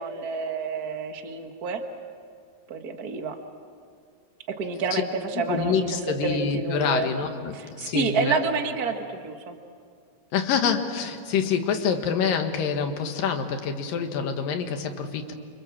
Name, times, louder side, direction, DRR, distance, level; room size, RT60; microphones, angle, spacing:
voice 1, 0.0-1.8 2.7-3.4 4.5-7.1 7.5-9.5, right 5 dB, 85° right, 5 dB, 0.8 m, -29 dB
voice 2, 5.5-8.4 10.3-15.3, left 6 dB, 70° left, 5 dB, 3.2 m, -26 dB
29.0 x 27.0 x 7.4 m, 2.3 s
omnidirectional pair, 4.3 m